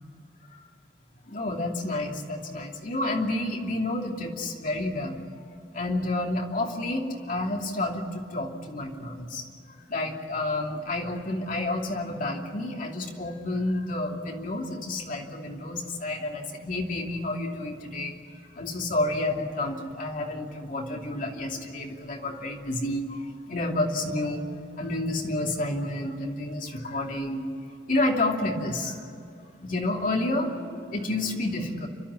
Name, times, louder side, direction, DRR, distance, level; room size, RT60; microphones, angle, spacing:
voice 1, 1.3-5.2 5.7-18.2 18.5-24.5 24.8-27.5 27.9-29.0 29.6-31.9, left 2 dB, 50° left, 1 dB, 2.8 m, -30 dB
29.0 x 12.5 x 9.8 m, 2.5 s
head